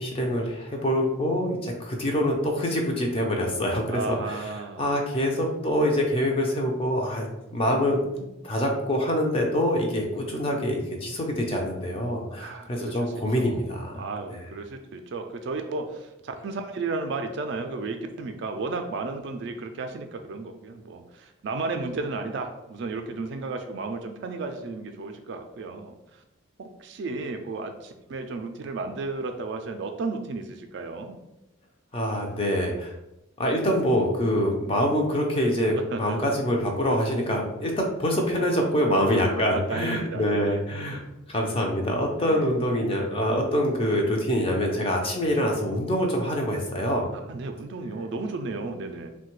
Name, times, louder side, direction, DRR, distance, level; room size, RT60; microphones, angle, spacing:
voice 1, 0.0-4.4 4.8-14.0 31.9-32.9 33.4-41.0 41.3-47.1, equal, 25° left, 1 dB, 0.4 m, -25 dB
voice 2, 3.9-4.9 12.3-26.2 26.8-31.2 35.7-36.3 39.4-41.0 42.1-42.5 47.3-49.1, right 3 dB, 60° right, 6 dB, 0.3 m, -34 dB
3.1 x 2.2 x 3.0 m, 0.92 s
head